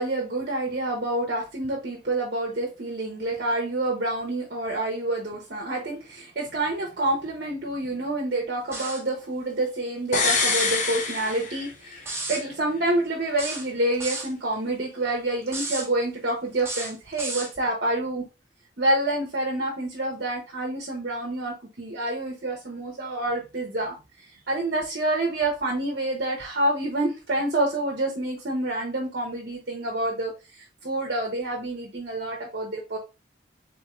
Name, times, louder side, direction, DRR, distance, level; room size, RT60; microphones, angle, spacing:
voice 1, 0.0-18.3 18.8-24.0 24.5-33.0, right 1 dB, 55° right, 0 dB, 0.8 m, -28 dB
sound 1, 8.7-9.1 10.3-10.7 12.1-12.4 13.4-14.3 15.5-15.9 16.6-17.5, right 3 dB, 15° right, 0.9 m, -33 dB
sound 2, 10.1-12.1 12.4-12.5, left 4 dB, 40° left, 0.8 m, -25 dB
3.8 x 3.5 x 3.0 m, 0.28 s
head